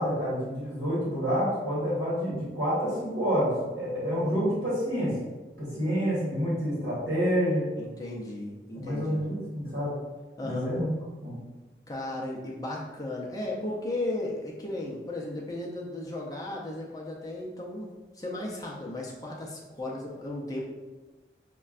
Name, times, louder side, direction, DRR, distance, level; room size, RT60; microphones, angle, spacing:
voice 1, 0.0-5.2 5.6-7.7 8.7-9.9 10.4-10.9 11.2-11.4, equal, 65° right, -8 dB, 1.3 m, -28 dB
voice 2, 4.0-4.7 7.8-9.2 10.4-10.7 11.9-17.9 18.1-20.6, left 1 dB, 20° left, -3 dB, 0.5 m, -35 dB
6.3 x 2.2 x 2.4 m, 1.2 s
head